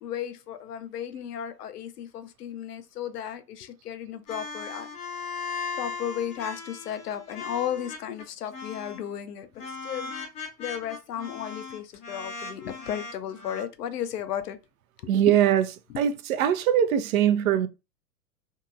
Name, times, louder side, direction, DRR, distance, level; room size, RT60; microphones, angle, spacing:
voice 1, 0.0-4.9 5.7-10.1 10.6-14.6 15.0-15.4, left 9 dB, 65° left, 0.6 m, -34 dB
sound 1, 4.3-8.2 8.5-9.1 9.6-13.6, left 4 dB, 15° left, 0.4 m, -38 dB
voice 2, 15.1-15.6 16.0-17.7, right 10 dB, 55° right, 0.6 m, -22 dB
2.9 x 2.7 x 2.4 m
figure-of-eight pair, 95°, 50 cm